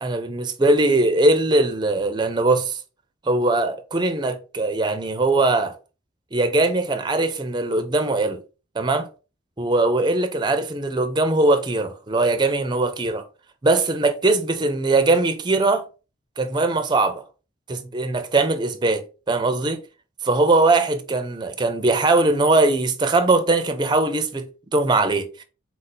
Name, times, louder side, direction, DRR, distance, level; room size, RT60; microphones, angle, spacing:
voice 1, 0.0-2.8 3.3-5.7 6.3-8.4 8.8-9.1 9.6-13.3 13.6-15.8 16.4-17.2 17.7-19.8 20.2-24.5 24.7-25.3, right 2 dB, 20° right, 0.5 m, -20 dB
4.1 x 2.6 x 4.3 m
head